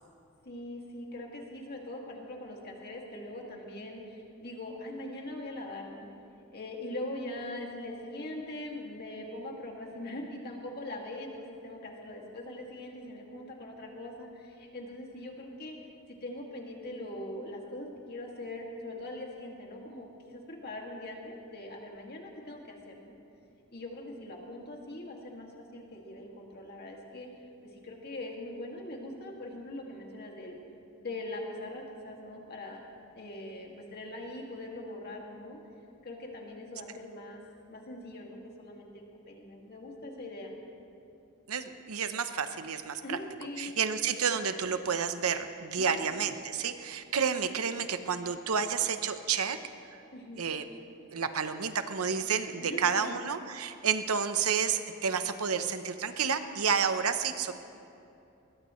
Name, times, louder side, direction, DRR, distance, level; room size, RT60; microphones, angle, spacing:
voice 1, 0.4-6.1 6.5-15.8 16.1-23.2 23.7-27.3 27.8-30.5 31.0-32.9 33.1-35.6 36.0-37.4 37.7-40.5 43.0-43.8 45.8-46.2 50.1-50.4 52.6-53.2, left 1 dB, 45° left, 0 dB, 2.3 m, -42 dB
voice 2, 41.5-43.2 43.6-49.6 50.4-50.7 51.1-57.5, right 6 dB, 80° right, 9 dB, 0.9 m, -30 dB
21.5 x 20.5 x 3.2 m, 2.7 s
head